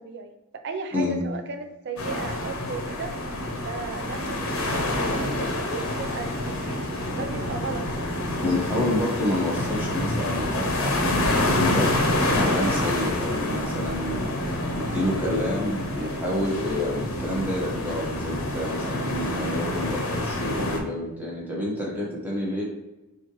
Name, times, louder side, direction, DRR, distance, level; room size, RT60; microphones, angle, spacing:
voice 1, 0.0-3.1 3.6-8.1, right 4 dB, 50° right, 6 dB, 0.5 m, -36 dB
sound 1, 2.0-20.8, left 1 dB, 65° left, 0.8 m, -27 dB
voice 2, 8.4-11.9 12.2-14.3 14.7-22.6, left 1 dB, 10° right, -5 dB, 1.1 m, -29 dB
6.1 x 2.5 x 3.1 m, 0.99 s
head